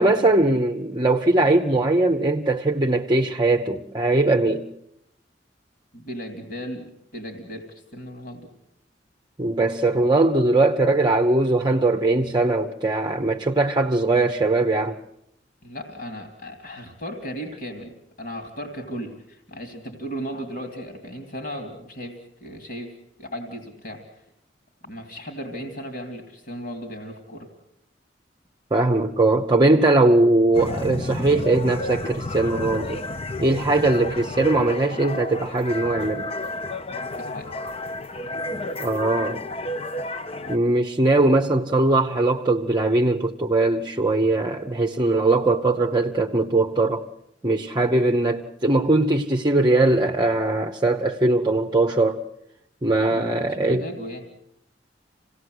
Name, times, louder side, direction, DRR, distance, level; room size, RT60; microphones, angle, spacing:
voice 1, 0.0-4.7 9.4-15.0 28.7-33.0 33.4-36.3 38.8-39.4 40.5-47.0 47.4-52.2 52.8-53.9, right 2 dB, 25° right, 0.9 m, -20 dB
voice 2, 5.9-8.5 15.6-22.9 23.2-24.2 24.8-27.5 36.9-37.6 53.1-54.3, equal, 60° left, 3.0 m, -36 dB
sound 1, 30.5-40.6, left 2 dB, 35° left, 0.8 m, -31 dB
27.0 x 18.0 x 7.9 m
head